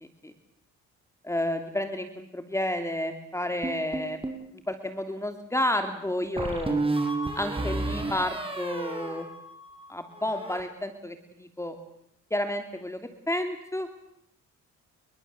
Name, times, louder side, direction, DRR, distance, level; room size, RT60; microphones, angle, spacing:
voice 1, 1.2-4.2 4.7-6.8 7.4-9.3 9.9-11.7 12.3-13.0 13.3-13.9, left 1 dB, 10° left, 7 dB, 2.9 m, -31 dB
sound 1, 3.6-4.5 6.4-9.9 10.1-10.6, right 2 dB, 20° right, 5.9 m, -31 dB
29.0 x 22.5 x 7.7 m, 0.74 s
cardioid pair, 90°, 30 cm